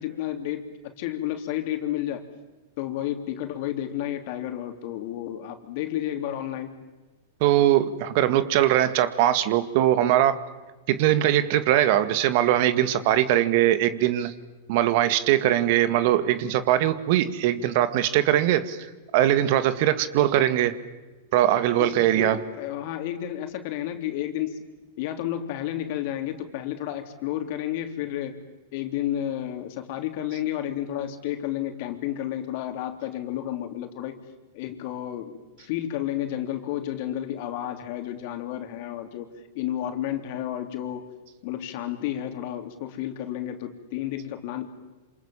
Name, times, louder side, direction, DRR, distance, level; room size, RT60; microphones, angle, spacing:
voice 1, 0.0-2.3 2.8-6.7 21.8-24.6 25.0-28.4 28.7-34.2 34.5-41.1 41.4-44.7, left 12 dB, 55° left, 6 dB, 3.5 m, -31 dB
voice 2, 7.4-10.4 10.9-14.3 14.7-18.8 19.1-20.8 21.3-22.4, right 12 dB, 55° right, 12 dB, 2.0 m, -21 dB
27.5 x 27.5 x 7.4 m, 1.2 s
hypercardioid pair, 115°, 0 cm